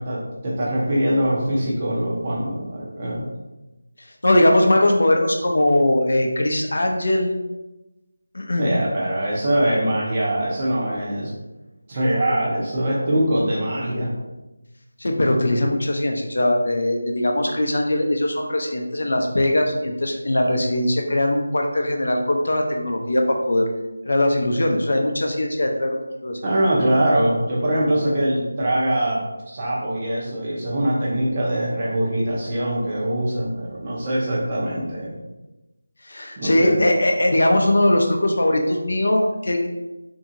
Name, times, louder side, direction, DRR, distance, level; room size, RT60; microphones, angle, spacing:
voice 1, 0.0-3.3 8.6-11.3 11.9-14.1 26.4-35.1 36.4-36.8, right 1 dB, 25° right, -5 dB, 0.6 m, -23 dB
voice 2, 4.2-7.3 8.3-8.7 15.0-23.7 24.1-26.0 26.2-26.4 36.1-39.7, left 1 dB, 60° left, 2 dB, 0.5 m, -20 dB
2.7 x 2.7 x 2.5 m, 1.0 s
figure-of-eight pair, 175°, 0 cm